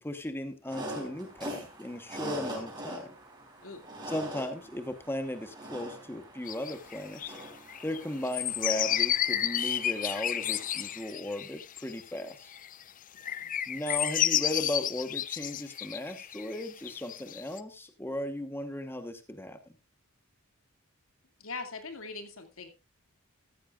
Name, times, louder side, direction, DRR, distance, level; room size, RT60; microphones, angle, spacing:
voice 1, 0.0-3.1 4.1-7.3 7.8-12.5 13.7-19.6, left 1 dB, 10° left, 8 dB, 1.1 m, -36 dB
sound 1, 0.7-11.0, right 1 dB, 20° right, 4.4 m, -43 dB
sound 2, 6.5-12.2 12.5-12.8 13.2-17.6, left 11 dB, 40° left, 0.5 m, -31 dB
voice 2, 13.2-13.6 21.4-22.7, left 4 dB, 85° left, 6 dB, 2.4 m, -42 dB
14.0 x 13.5 x 2.4 m, 0.24 s
head